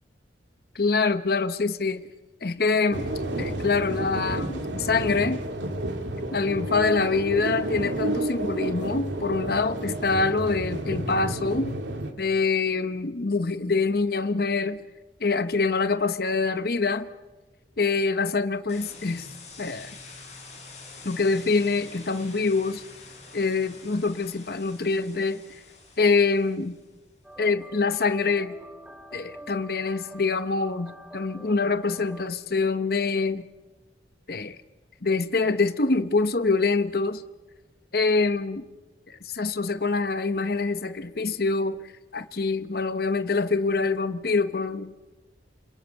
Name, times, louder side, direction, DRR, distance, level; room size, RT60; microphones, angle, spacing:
voice 1, 0.7-2.1 2.4-3.1 3.4-5.4 6.3-11.7 12.2-14.8 15.2-17.1 17.8-19.3 19.6-19.9 21.0-22.8 23.3-25.6 26.0-26.8 27.4-28.5 29.1-33.4 34.3-34.6 35.0-37.2 37.9-38.6 39.1-41.8 42.1-44.9, left 4 dB, 55° left, 0.9 m, -25 dB
sound 1, 2.9-12.1, right 1 dB, 80° right, 2.6 m, -31 dB
sound 2, 18.7-26.9, left 3 dB, 40° left, 8.0 m, -46 dB
sound 3, 27.2-32.3, right 1 dB, 5° right, 1.9 m, -45 dB
28.5 x 21.0 x 8.2 m
head